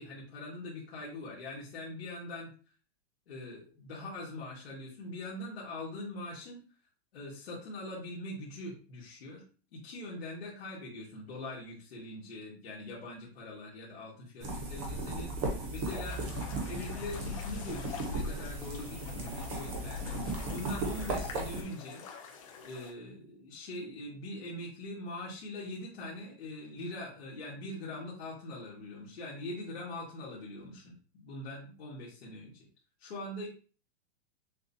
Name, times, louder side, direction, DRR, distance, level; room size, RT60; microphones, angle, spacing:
voice 1, 0.0-2.5 3.3-6.6 7.1-9.4 9.7-22.0 22.6-32.7 33.0-33.5, left 1 dB, 65° left, -6 dB, 1.7 m, -42 dB
sound 1, 14.4-21.6, right 1 dB, 25° right, 0.8 m, -36 dB
sound 2, 15.8-22.9, left 6 dB, 30° left, 0.6 m, -48 dB
6.3 x 2.3 x 2.7 m, 0.38 s
supercardioid pair, 175°, 33 cm